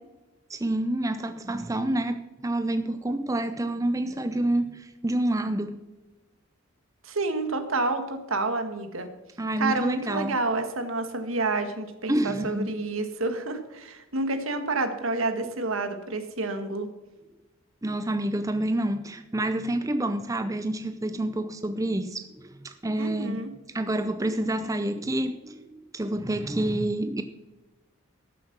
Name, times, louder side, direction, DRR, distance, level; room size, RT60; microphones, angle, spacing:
voice 1, 0.5-5.8 9.4-10.3 12.1-12.7 17.8-23.4 23.7-27.2, right 1 dB, 15° right, 9 dB, 0.5 m, -28 dB
voice 2, 7.0-9.1 9.6-16.9 23.0-23.5, right 3 dB, 75° right, 8 dB, 1.6 m, -29 dB
13.5 x 7.6 x 6.1 m, 1.1 s
head